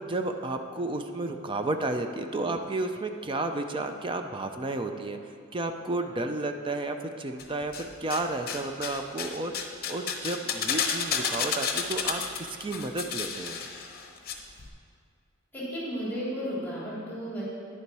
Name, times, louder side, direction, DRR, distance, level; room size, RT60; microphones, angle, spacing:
voice 1, 0.0-5.2 5.5-13.6, right 2 dB, 25° right, 6 dB, 0.5 m, -32 dB
sound 1, 7.4-8.2 8.5-14.3 14.6-14.7, left 6 dB, 50° left, 0.8 m, -31 dB
voice 2, 15.5-17.4, equal, 10° left, -7 dB, 2.6 m, -33 dB
10.0 x 6.9 x 4.7 m, 2.3 s
head